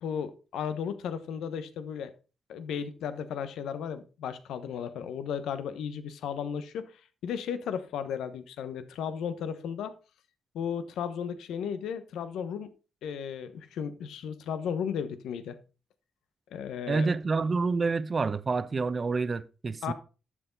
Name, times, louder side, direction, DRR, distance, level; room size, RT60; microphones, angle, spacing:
voice 1, 0.0-2.1 2.5-9.9 10.5-12.7 13.0-15.6 16.5-17.1 19.8-19.9, left 7 dB, 85° left, 1.0 m, -35 dB
voice 2, 16.9-19.9, right 4 dB, 45° right, 0.9 m, -28 dB
11.5 x 7.4 x 3.9 m
supercardioid pair, 55°, 0 cm